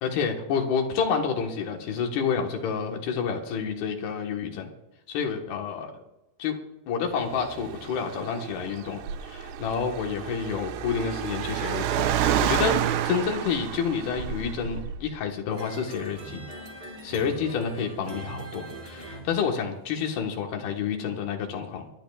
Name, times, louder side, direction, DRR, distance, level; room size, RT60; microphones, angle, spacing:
voice 1, 0.0-4.7 5.1-6.0 6.4-6.6 6.9-12.1 12.4-16.4 17.0-21.9, left 6 dB, 85° left, 2 dB, 3.5 m, -29 dB
Car, 7.2-15.2, right 10 dB, 80° right, 2.6 m, -29 dB
sound 1, 15.5-20.1, right 2 dB, 50° right, 0.7 m, -42 dB
26.0 x 10.5 x 2.4 m, 0.93 s
omnidirectional pair, 4.4 m